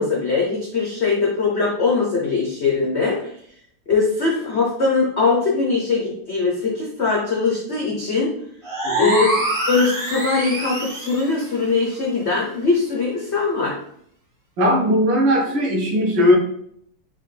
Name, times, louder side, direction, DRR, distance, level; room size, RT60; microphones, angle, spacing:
voice 1, 0.0-3.3 3.9-8.3 9.0-9.3 9.7-13.8, left 4 dB, 70° left, -3 dB, 0.6 m, -21 dB
sound 1, 8.6-11.3, right 1 dB, 30° right, 0.6 m, -25 dB
voice 2, 8.8-9.2 14.6-16.4, equal, 65° right, -1 dB, 1.6 m, -18 dB
5.4 x 2.4 x 3.3 m, 0.66 s
omnidirectional pair, 2.3 m